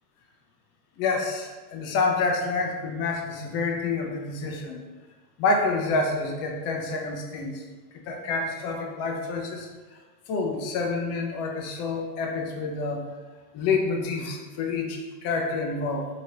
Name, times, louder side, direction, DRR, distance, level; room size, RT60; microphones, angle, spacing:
voice 1, 1.0-4.8 5.4-7.6 8.1-9.7 10.3-13.0 13.5-16.1, left 3 dB, 35° left, 2 dB, 0.6 m, -28 dB
2.9 x 2.7 x 2.8 m, 1.3 s
hypercardioid pair, 85°, 46 cm